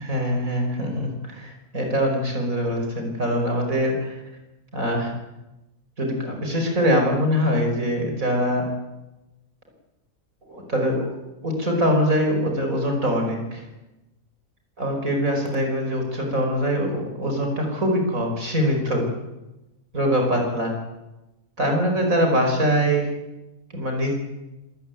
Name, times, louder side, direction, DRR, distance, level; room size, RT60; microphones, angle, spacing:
voice 1, 0.0-4.2 4.7-5.1 6.0-8.7 10.5-11.2 11.4-13.7 14.8-19.1 19.9-20.7 21.6-23.1 23.7-24.1, equal, 70° right, 2 dB, 5.7 m, -23 dB
26.0 x 16.0 x 9.4 m, 1.0 s
omnidirectional pair, 1.5 m